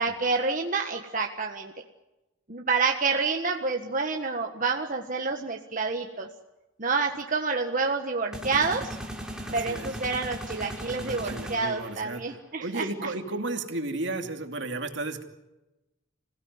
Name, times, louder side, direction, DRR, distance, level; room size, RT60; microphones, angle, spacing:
voice 1, 0.0-1.7 2.5-6.3 6.8-8.9 9.5-13.1, right 4 dB, 40° right, 2 dB, 1.5 m, -28 dB
sound 1, 8.3-12.3, equal, 5° right, 3.5 m, -38 dB
voice 2, 9.4-9.9 11.0-15.2, right 2 dB, 65° right, 5 dB, 2.7 m, -34 dB
27.5 x 17.0 x 9.7 m, 1.0 s
head